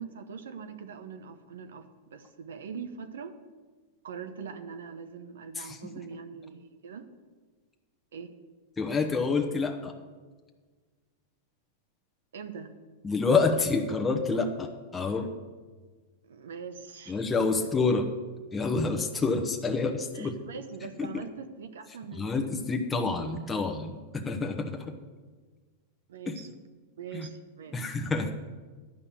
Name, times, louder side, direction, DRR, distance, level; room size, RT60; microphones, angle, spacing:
voice 1, 0.0-3.3 4.0-7.1 8.1-8.3 12.3-12.7 16.2-17.2 20.1-22.3 26.1-26.5 27.0-27.8, right 6 dB, 80° right, 8 dB, 0.8 m, -42 dB
voice 2, 5.5-5.9 8.8-9.9 13.0-15.3 17.1-18.1 18.5-20.4 21.0-21.2 22.1-24.9 26.3-26.4 27.1-27.3 27.7-28.3, left 4 dB, 15° left, 3 dB, 1.0 m, -28 dB
10.5 x 5.6 x 8.4 m, 1.4 s
hypercardioid pair, 115°, 0 cm